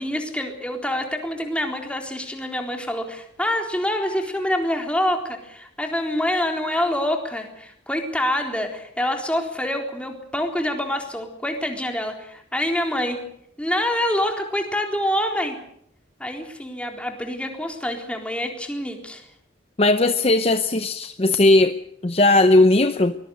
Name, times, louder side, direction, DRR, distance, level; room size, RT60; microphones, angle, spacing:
voice 1, 0.0-13.2 13.6-15.6 16.2-19.3, left 1 dB, 5° left, 3 dB, 3.9 m, -26 dB
voice 2, 19.8-21.7 22.0-23.1, left 2 dB, 30° left, 10 dB, 0.8 m, -17 dB
23.5 x 21.0 x 6.5 m, 0.70 s
head